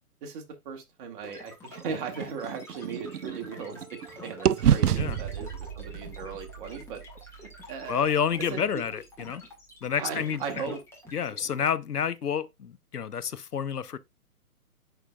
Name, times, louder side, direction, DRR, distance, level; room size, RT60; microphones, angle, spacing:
voice 1, 0.2-7.0 7.4-8.1 8.5-8.8 10.0-10.8, right 6 dB, 35° right, 1.8 m, -38 dB
sound 1, 1.2-11.7, left 2 dB, 5° left, 1.7 m, -48 dB
sound 2, 1.8-4.1 4.5-8.4, right 9 dB, 85° right, 0.6 m, -29 dB
Wind instrument woodwind instrument, 2.2-6.7, right 2 dB, 15° right, 1.3 m, -56 dB
voice 2, 7.9-9.4 9.8-10.7 11.1-14.0, left 7 dB, 90° left, 0.8 m, -29 dB
10.0 x 4.5 x 2.3 m
figure-of-eight pair, 130°, 45 cm